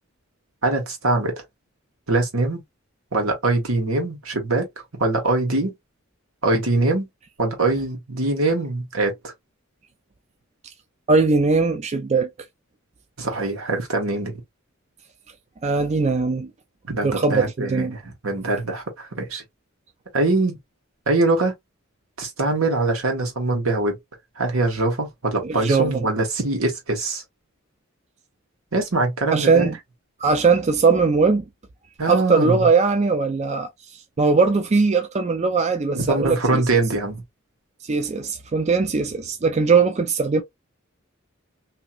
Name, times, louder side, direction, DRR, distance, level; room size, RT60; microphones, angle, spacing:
voice 1, 0.6-1.3 2.1-2.6 3.1-4.7 5.0-5.7 6.4-7.1 7.4-9.1 13.2-14.4 16.9-19.4 20.1-20.6 21.1-21.5 22.2-24.0 24.4-27.2 28.7-29.7 32.0-32.7 35.9-37.2, right 2 dB, 80° right, 1.4 m, -23 dB
voice 2, 11.1-12.3 15.6-16.5 17.0-17.9 25.4-26.1 29.3-29.8 30.2-31.4 32.1-33.7 34.2-36.6 37.8-40.4, right 4 dB, 30° right, 0.4 m, -20 dB
2.9 x 2.8 x 2.3 m
head